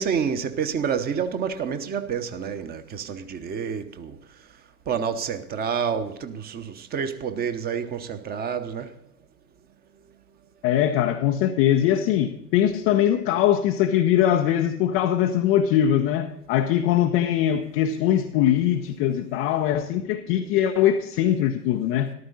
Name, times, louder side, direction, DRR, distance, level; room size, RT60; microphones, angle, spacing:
voice 1, 0.0-4.2 4.9-8.9, right 7 dB, 20° right, 0.9 m, -28 dB
voice 2, 10.6-22.1, left 10 dB, 20° left, 0.4 m, -22 dB
14.0 x 12.5 x 3.9 m
figure-of-eight pair, 95°, 47 cm